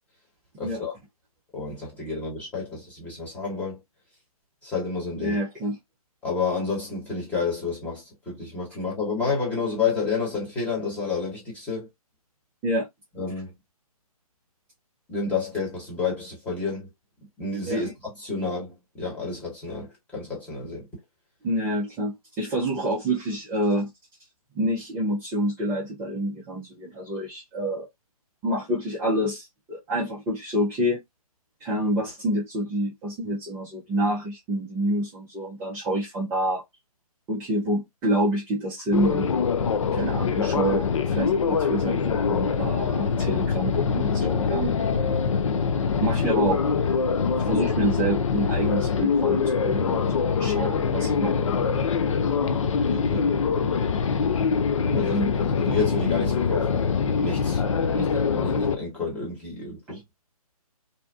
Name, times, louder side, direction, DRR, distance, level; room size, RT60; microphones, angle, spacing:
voice 1, 0.6-0.9 1.5-3.8 4.6-5.4 6.2-11.9 13.1-13.5 15.1-16.9 17.4-20.9 52.9-53.3 54.9-56.8 57.2-57.6 57.9-60.0, left 4 dB, 5° left, 1.1 m, -30 dB
voice 2, 5.2-5.8 12.6-12.9 17.7-17.8 21.4-23.9 24.5-27.9 28.4-31.0 31.6-36.6 37.3-39.3 39.9-44.7 46.0-46.6 47.4-51.5 53.1-53.3 54.9-55.3 59.9-60.0, right 1 dB, 10° right, 0.5 m, -27 dB
sound 1, 38.9-58.8, left 6 dB, 55° left, 0.4 m, -24 dB
2.7 x 2.2 x 2.3 m
figure-of-eight pair, 140°, 19 cm